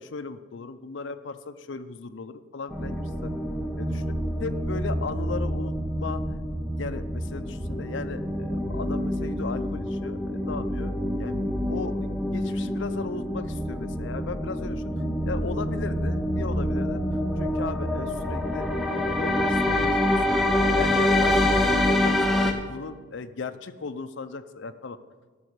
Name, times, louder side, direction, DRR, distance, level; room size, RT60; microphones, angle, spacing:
voice 1, 0.0-3.3 3.8-4.1 4.4-6.2 6.8-11.4 11.7-14.8 15.3-17.0 17.4-20.4 20.8-25.0, left 4 dB, 75° left, 9 dB, 0.5 m, -37 dB
sound 1, 2.7-22.5, left 1 dB, ahead, 0.9 m, -26 dB
13.0 x 6.1 x 6.6 m, 1.4 s
head